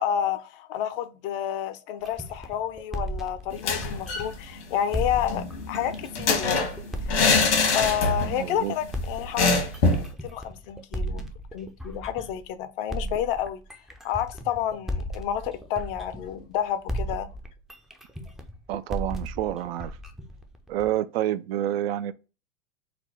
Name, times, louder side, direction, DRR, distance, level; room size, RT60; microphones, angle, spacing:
voice 1, 0.0-6.7 7.1-7.3 7.6-9.7 10.0-11.3 11.5-13.6 14.0-17.3, left 10 dB, 55° left, 0.6 m, -30 dB
sound 1, 2.1-4.5 4.9-8.5 8.9-12.5 12.9-16.6 16.9-21.0, equal, ahead, 0.4 m, -35 dB
sound 2, 3.5-4.3 4.6-4.7 5.0-8.4 8.7-8.9 9.4-10.1, left 3 dB, 75° left, 1.4 m, -24 dB
voice 2, 8.2-8.7 18.7-20.0 20.7-22.1, right 12 dB, 60° right, 0.4 m, -28 dB
4.1 x 2.1 x 4.3 m
hypercardioid pair, 100°, 34 cm